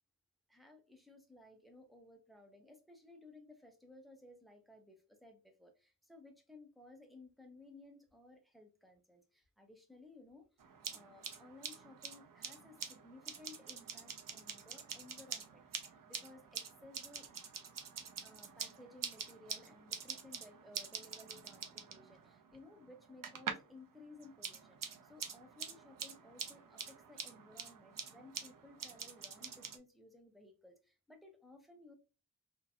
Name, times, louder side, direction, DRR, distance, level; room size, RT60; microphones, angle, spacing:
voice 1, 0.5-10.5 10.9-17.3 18.2-31.9, left 2 dB, ahead, 0.9 m, -58 dB
sound 1, 10.6-23.8 24.1-29.8, right 6 dB, 75° right, 0.6 m, -46 dB
2.9 x 2.6 x 2.8 m
wide cardioid pair, 75°, 33 cm